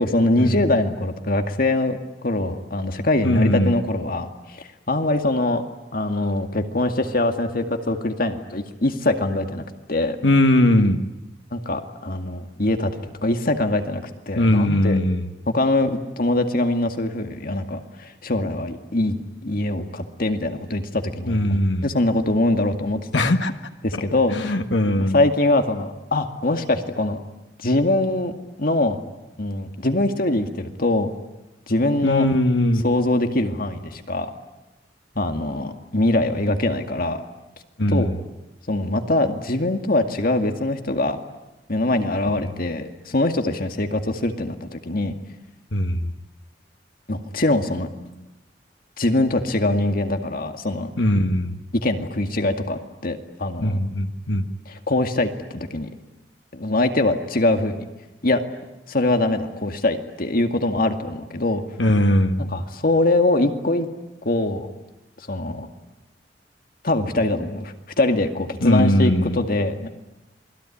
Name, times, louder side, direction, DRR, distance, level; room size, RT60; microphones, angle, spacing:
voice 1, 0.0-5.6 5.9-10.2 11.5-15.0 15.5-23.3 23.8-24.6 25.0-27.2 27.6-28.3 28.6-29.0 29.4-31.1 31.7-32.3 32.8-34.3 35.2-37.2 37.9-38.1 38.7-41.2 41.7-45.1 47.1-47.9 49.0-50.9 51.7-53.8 54.7-55.9 56.5-57.8 58.2-58.4 58.9-61.6 62.4-63.9 64.2-64.7 65.2-65.7 66.8-69.9, left 2 dB, 55° left, 6 dB, 2.1 m, -23 dB
voice 2, 3.2-3.8 10.2-11.0 14.4-15.3 21.3-21.9 23.1-23.5 23.9-24.0 24.3-25.2 32.0-32.8 37.8-38.1 42.2-42.6 45.7-46.1 51.0-51.6 53.6-54.5 61.8-62.5 68.6-69.4, left 1 dB, 85° left, 6 dB, 1.6 m, -20 dB
27.5 x 21.5 x 10.0 m, 0.99 s
head